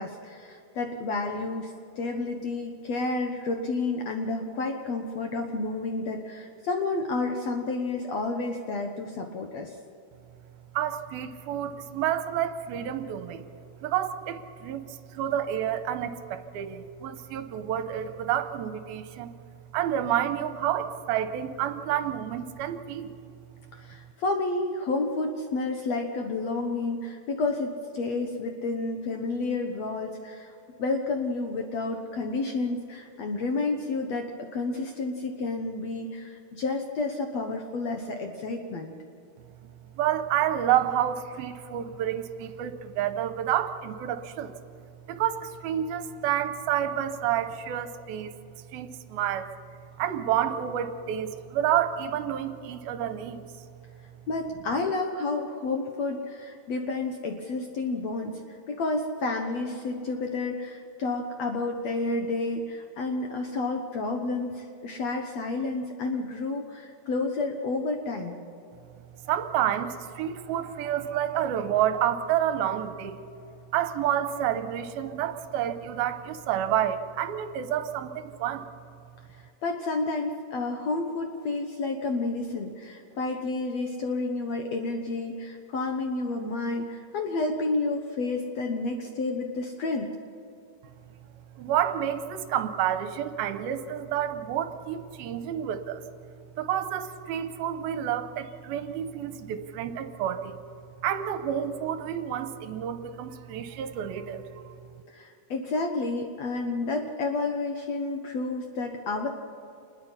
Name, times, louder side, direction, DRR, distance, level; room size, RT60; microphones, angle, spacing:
voice 1, 0.0-9.8 23.7-30.5 30.8-38.9 54.3-68.4 79.6-90.1 105.1-109.3, left 3 dB, 65° left, 4 dB, 1.8 m, -30 dB
voice 2, 10.7-13.5 13.8-19.3 19.7-23.1 40.0-44.5 45.1-48.4 48.7-49.5 50.0-53.5 69.3-73.2 73.7-78.6 91.6-96.0 96.6-100.6 101.0-104.7, right 10 dB, 80° right, 10 dB, 2.7 m, -29 dB
27.0 x 21.0 x 5.7 m, 2.6 s
omnidirectional pair, 4.4 m